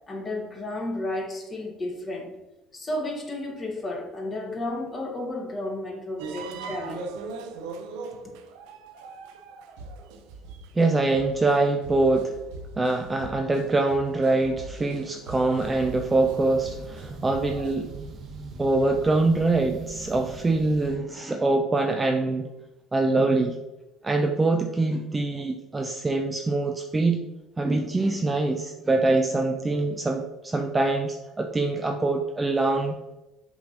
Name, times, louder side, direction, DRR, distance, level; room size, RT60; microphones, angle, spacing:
voice 1, 0.1-2.3 2.7-7.1, left 1 dB, 20° left, 0 dB, 1.5 m, -32 dB
sound 1, 6.2-17.7, right 4 dB, 90° right, 0.7 m, -41 dB
voice 2, 10.8-12.4 12.8-17.9 18.6-22.5 22.9-23.6 24.0-27.3 27.6-33.0, right 2 dB, 15° right, 4 dB, 0.4 m, -24 dB
sound 2, 15.5-21.0, right 4 dB, 45° right, 0.9 m, -41 dB
7.1 x 3.2 x 5.2 m, 0.99 s
cardioid pair, 130°, 0 cm